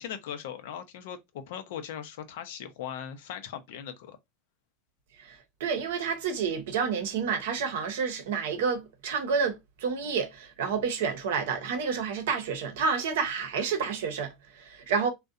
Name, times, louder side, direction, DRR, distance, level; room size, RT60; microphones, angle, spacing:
voice 1, 0.0-4.2, left 9 dB, 75° left, 0.5 m, -39 dB
voice 2, 5.2-15.1, right 5 dB, 80° right, 0.7 m, -29 dB
2.6 x 2.1 x 2.3 m
hypercardioid pair, 100°, 0 cm